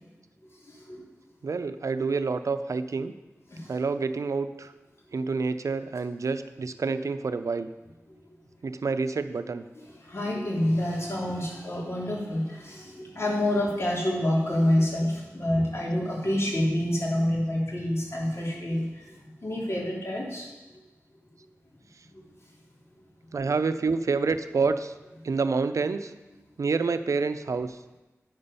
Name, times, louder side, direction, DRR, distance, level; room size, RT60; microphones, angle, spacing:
voice 1, 1.4-3.1 3.7-4.7 5.1-7.7 8.6-9.6 23.3-24.9 25.2-26.1 26.6-27.8, right 4 dB, 90° right, 11 dB, 0.5 m, -28 dB
voice 2, 10.1-18.8 19.4-20.4, left 1 dB, 55° left, -4 dB, 3.1 m, -27 dB
9.5 x 6.9 x 5.5 m, 1.1 s
wide cardioid pair, 50°, 5 cm